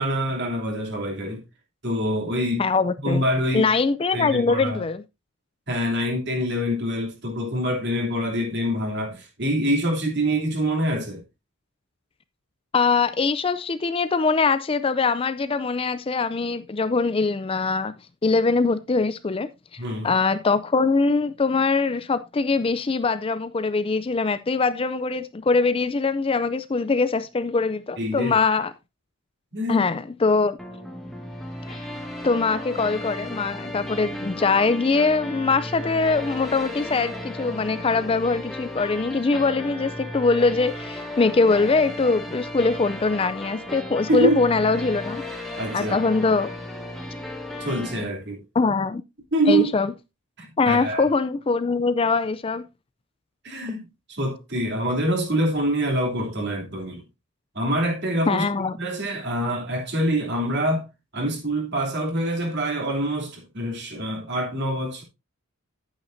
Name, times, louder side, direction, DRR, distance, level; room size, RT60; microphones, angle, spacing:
voice 1, 0.0-1.4 1.8-2.6 3.0-3.7 4.1-4.8 5.7-11.2 19.8-20.1 28.0-28.4 29.5-29.8 44.1-44.4 45.6-46.0 47.6-48.4 49.3-49.7 50.4-51.1 53.4-57.0 57.5-58.5 58.8-60.9 61.1-65.0, equal, 50° right, 3.0 m, -25 dB
voice 2, 2.6-3.2 3.5-5.0 12.7-17.9 18.2-19.5 20.0-28.7 29.7-30.6 31.7-31.9 32.2-45.2 45.7-46.5 48.6-49.0 49.5-49.9 50.6-52.7 58.3-58.8, left 4 dB, 25° left, 0.4 m, -22 dB
sound 1, 30.6-48.1, left 1 dB, ahead, 1.8 m, -35 dB
10.5 x 8.9 x 2.6 m
head